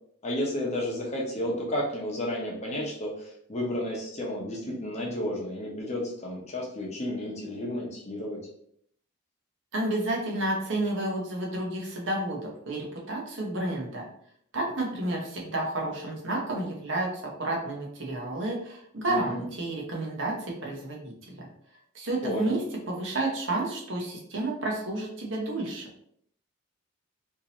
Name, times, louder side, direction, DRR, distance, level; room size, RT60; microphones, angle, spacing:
voice 1, 0.2-8.4 19.1-19.4 22.2-22.6, left 1 dB, 30° left, -2 dB, 0.9 m, -32 dB
voice 2, 9.7-14.0 14.5-21.5 21.9-22.6 22.9-25.9, right 2 dB, 60° right, -1 dB, 1.1 m, -31 dB
3.7 x 2.8 x 2.9 m, 0.67 s
head